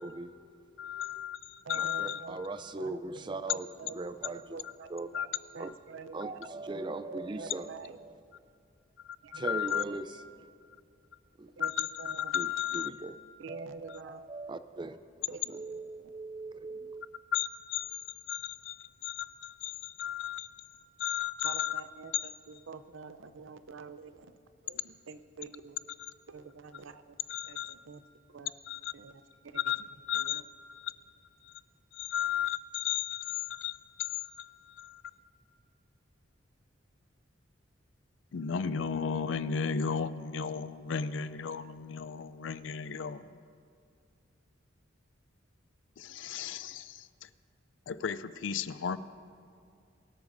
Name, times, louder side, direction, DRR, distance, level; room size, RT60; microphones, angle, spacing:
voice 1, 0.0-1.2 1.8-4.6 4.9-5.1 5.6-5.7 6.1-8.1 9.3-10.1 11.4-11.5 12.3-12.5 12.7-13.1 13.5-15.0 15.5-17.1, right 2 dB, 25° right, 11 dB, 0.4 m, -40 dB
voice 2, 0.8-2.2 4.6-4.7 5.1-5.4 9.0-9.8 11.6-12.9 17.3-18.0 18.3-20.5 21.0-21.8 22.1-22.3 26.0-26.1 27.3-27.7 28.6-28.9 29.5-30.4 30.7-30.9 31.4-31.5 31.9-35.1 38.3-43.4 46.0-47.3 47.9-49.0, left 8 dB, 70° left, 15 dB, 0.4 m, -34 dB
voice 3, 1.6-3.2 3.5-5.3 5.5-6.3 7.1-8.0 9.2-10.1 11.6-12.3 13.4-14.2 15.3-16.1 21.4-24.3 24.6-25.8 26.3-27.2 27.5-28.0 28.3-28.5 28.9-29.6 30.1-30.4, right 4 dB, 75° right, 12 dB, 0.6 m, -47 dB
23.0 x 13.0 x 2.6 m, 2.4 s
head